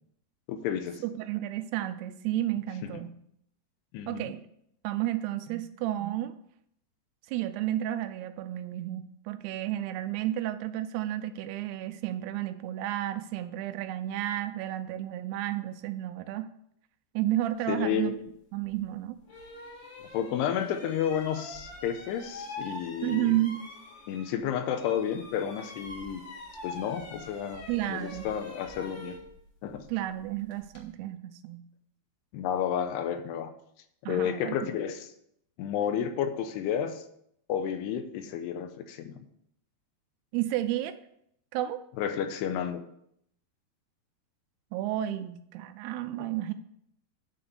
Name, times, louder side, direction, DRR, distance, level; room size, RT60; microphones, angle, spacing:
voice 1, 0.5-1.0 2.8-2.9 3.9-4.3 17.7-18.1 20.1-23.4 24.1-26.2 26.6-27.6 27.9-29.2 29.6-29.8 32.3-33.5 34.0-35.1 35.6-37.0 37.5-39.2 42.0-42.8 46.2-46.3, left 9 dB, 85° left, 8 dB, 2.8 m, -31 dB
voice 2, 1.0-3.1 4.1-4.4 4.8-6.3 7.3-16.5 17.2-18.1 18.5-19.2 23.0-23.6 27.7-28.3 29.9-31.6 34.1-34.7 40.3-41.0 41.5-41.8 44.7-46.5, right 13 dB, 85° right, 10 dB, 2.5 m, -32 dB
sound 1, 18.6-18.8 19.3-24.4 24.7-30.9, left 2 dB, 50° left, 1.4 m, -44 dB
9.4 x 4.0 x 6.9 m, 0.72 s
omnidirectional pair, 4.8 m